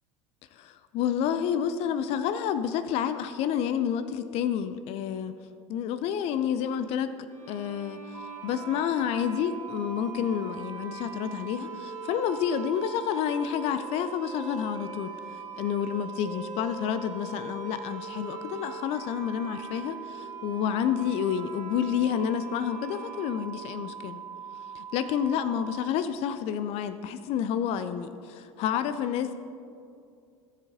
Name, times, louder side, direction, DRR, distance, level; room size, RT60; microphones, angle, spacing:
voice 1, 0.5-5.3 5.7-7.1 7.5-15.1 15.6-24.2 24.7-29.3, left 8 dB, 40° left, 12 dB, 0.4 m, -29 dB
sound 1, 7.3-24.1, right 1 dB, 80° right, 2.4 m, -46 dB
sound 2, 8.1-25.9, right 7 dB, 10° right, 1.4 m, -42 dB
16.5 x 7.3 x 2.7 m, 2.5 s
figure-of-eight pair, 75°, 16 cm